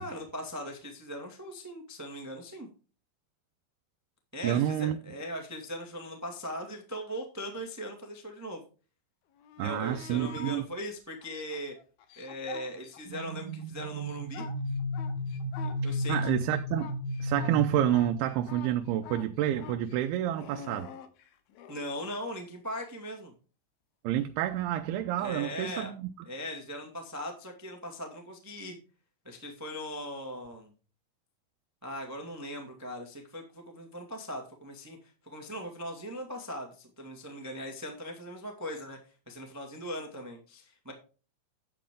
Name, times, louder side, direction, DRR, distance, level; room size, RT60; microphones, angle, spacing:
voice 1, 0.0-2.7 4.3-8.6 9.6-11.7 12.1-14.4 15.6-16.4 21.7-23.3 25.2-25.9 26.2-28.8 29.2-30.7 31.8-39.0 39.2-40.9, equal, 15° right, 0.6 m, -39 dB
voice 2, 4.4-5.0 9.6-10.6 15.8-20.9 24.0-26.1, right 12 dB, 90° right, 2.6 m, -29 dB
sound 1, 9.4-10.6 11.2-13.3 13.6-21.8 24.6-24.7, left 8 dB, 80° left, 2.9 m, -46 dB
sound 2, 13.1-18.7, left 1 dB, 65° right, 2.7 m, -34 dB
10.5 x 8.5 x 3.7 m
omnidirectional pair, 4.4 m